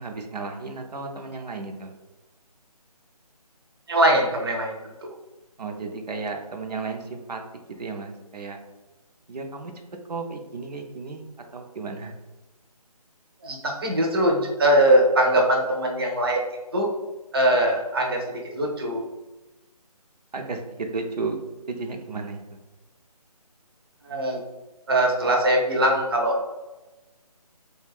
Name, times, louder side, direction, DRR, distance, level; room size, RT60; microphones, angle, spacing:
voice 1, 0.0-1.9 5.6-7.4 7.8-8.6 9.3-9.7 10.1-11.2 11.5-12.1 20.3-21.4 21.7-22.4, right 4 dB, 85° right, 3 dB, 0.5 m, -33 dB
voice 2, 3.9-5.1 13.4-16.4 16.7-16.9 17.3-19.0 24.0-24.4 24.9-26.4, right 1 dB, 40° right, 0 dB, 0.4 m, -21 dB
2.4 x 2.2 x 3.4 m, 1.1 s
figure-of-eight pair, 160°, 20 cm